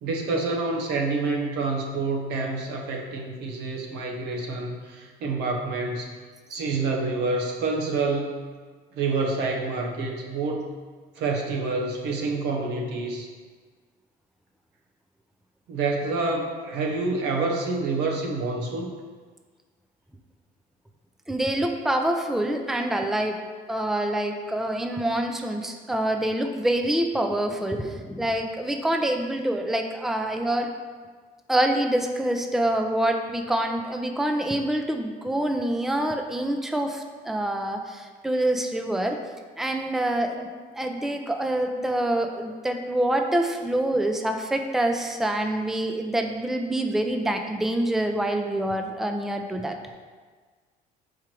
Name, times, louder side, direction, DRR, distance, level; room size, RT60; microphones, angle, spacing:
voice 1, 0.0-6.1 6.5-8.3 8.9-10.7 11.2-13.3 15.7-18.9, right 3 dB, 85° right, 1 dB, 1.1 m, -27 dB
voice 2, 21.3-23.4 23.7-30.7 31.5-39.2 39.6-40.5 40.8-49.8, right 1 dB, ahead, 5 dB, 0.5 m, -26 dB
4.8 x 4.5 x 5.9 m, 1.5 s
cardioid pair, 110°, 17 cm